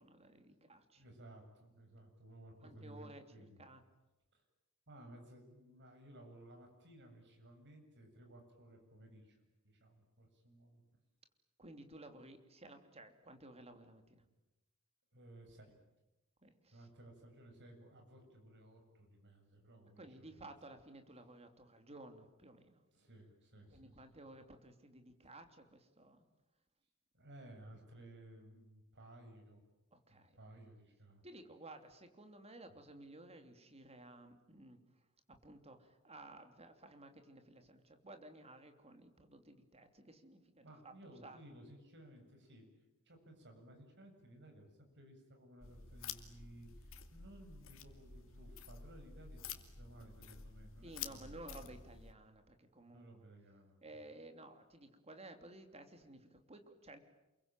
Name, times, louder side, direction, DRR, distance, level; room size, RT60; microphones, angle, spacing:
voice 1, 0.0-1.0 2.6-3.8 11.6-14.2 16.4-16.9 20.0-22.8 23.7-26.3 29.9-30.4 31.2-40.9 41.2-41.4 50.8-53.1 53.8-57.0, right 2 dB, 30° right, 7 dB, 3.0 m, -55 dB
voice 2, 1.0-3.6 4.3-4.4 4.9-10.8 15.1-15.8 16.7-20.5 22.9-24.0 27.1-29.6 30.1-31.3 40.6-42.6 43.1-51.7 52.8-54.0, right 1 dB, 55° right, 4 dB, 7.7 m, -58 dB
sound 1, 45.6-52.1, left 7 dB, 65° left, 2.5 m, -50 dB
28.5 x 23.0 x 9.1 m, 0.98 s
head